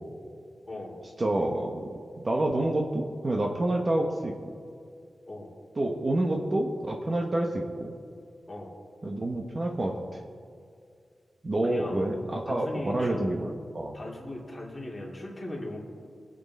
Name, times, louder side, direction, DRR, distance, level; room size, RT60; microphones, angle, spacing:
voice 1, 0.7-1.0 5.3-5.5 8.5-8.7 11.6-12.1 12.5-13.2 13.9-15.8, left 1 dB, 20° left, -3 dB, 2.7 m, -37 dB
voice 2, 1.2-1.8 2.2-4.5 5.8-7.9 9.0-10.2 11.4-14.0, right 1 dB, 30° right, 2 dB, 1.0 m, -28 dB
23.0 x 7.9 x 4.2 m, 2.2 s
wide cardioid pair, 155°, 0 cm